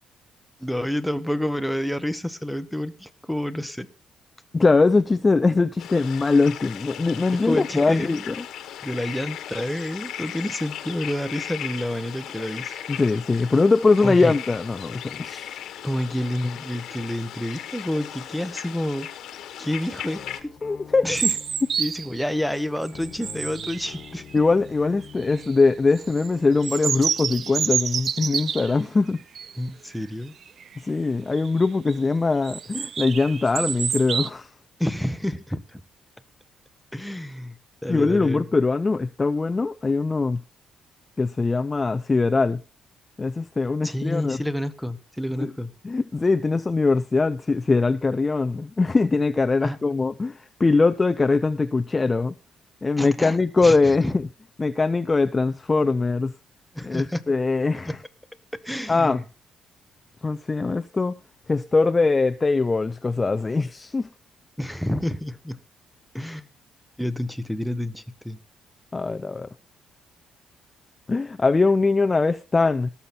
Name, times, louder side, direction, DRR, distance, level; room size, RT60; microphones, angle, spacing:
voice 1, 0.6-3.9 7.4-8.3 8.8-12.8 14.0-14.4 15.8-19.1 19.6-20.5 21.0-21.4 21.8-24.2 29.6-30.3 34.8-35.8 36.9-38.4 43.8-45.7 49.6-49.8 53.0-54.1 56.7-57.2 57.8-58.0 58.6-59.2 64.6-65.6 66.1-66.5 67.0-68.4, left 1 dB, ahead, 1.1 m, -29 dB
voice 2, 4.5-8.3 12.9-15.6 20.6-21.2 24.3-29.2 30.8-34.5 37.9-40.4 41.2-42.6 43.2-44.4 45.4-45.5 45.8-52.3 52.8-54.2 54.6-56.3 56.8-57.9 58.9-59.2 60.2-61.1 61.5-64.1 68.9-69.5 71.1-72.9, left 3 dB, 25° left, 0.5 m, -22 dB
sound 1, 5.8-20.4, left 10 dB, 80° left, 1.3 m, -37 dB
sound 2, 20.1-27.6, left 7 dB, 55° left, 1.4 m, -46 dB
sound 3, 21.1-22.2 22.8-24.4 25.1-25.5 26.0-28.8 29.3-29.6 29.9-30.0 30.4-30.8 31.3-31.9 32.4-34.3, right 7 dB, 55° right, 0.5 m, -28 dB
18.0 x 7.0 x 4.3 m
cardioid pair, 90°, 0 cm